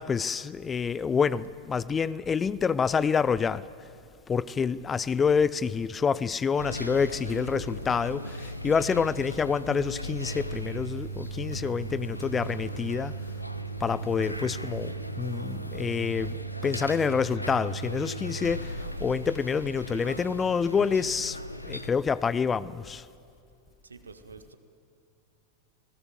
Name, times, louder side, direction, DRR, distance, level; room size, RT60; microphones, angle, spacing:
voice 1, 0.0-3.6 4.3-13.1 13.8-16.4 16.6-21.4 21.6-23.0, left 6 dB, 20° left, 0.5 m, -27 dB
sound 1, 6.6-21.9, right 2 dB, 90° left, 1.1 m, -36 dB
voice 2, 23.8-24.6, right 4 dB, 75° right, 1.8 m, -49 dB
27.0 x 19.0 x 7.9 m
figure-of-eight pair, 90°, 0 cm